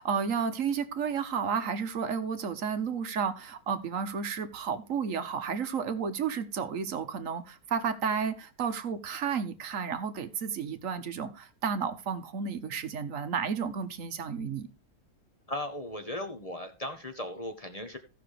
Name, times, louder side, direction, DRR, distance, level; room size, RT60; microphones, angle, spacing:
voice 1, 0.0-14.7, right 6 dB, 55° right, 1.1 m, -32 dB
voice 2, 15.5-18.0, left 1 dB, 30° left, 0.8 m, -37 dB
16.5 x 5.9 x 3.2 m
omnidirectional pair, 1.9 m